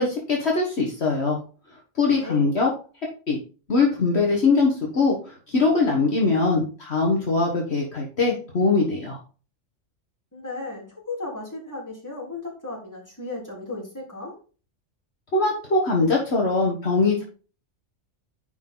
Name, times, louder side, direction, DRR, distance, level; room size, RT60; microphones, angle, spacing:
voice 1, 0.0-1.4 2.0-2.7 3.3-3.4 3.7-5.2 5.5-9.2 15.3-17.2, left 3 dB, 55° left, -2 dB, 1.8 m, -22 dB
voice 2, 2.1-2.5 10.3-14.3, left 2 dB, 15° left, -5 dB, 3.7 m, -35 dB
10.0 x 4.9 x 3.9 m, 0.37 s
omnidirectional pair, 1.3 m